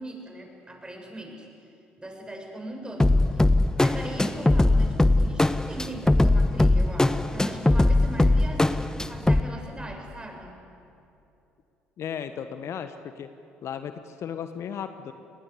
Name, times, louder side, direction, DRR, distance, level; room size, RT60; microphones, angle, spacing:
voice 1, 0.0-1.5 2.0-3.4 3.8-10.5, right 1 dB, 15° right, 2 dB, 7.1 m, -40 dB
sound 1, 3.0-9.4, left 2 dB, 10° left, 1.1 m, -21 dB
voice 2, 12.0-13.3 13.6-15.1, left 8 dB, 50° left, 9 dB, 1.3 m, -35 dB
29.5 x 20.0 x 8.4 m, 2.8 s
figure-of-eight pair, 55°, 6 cm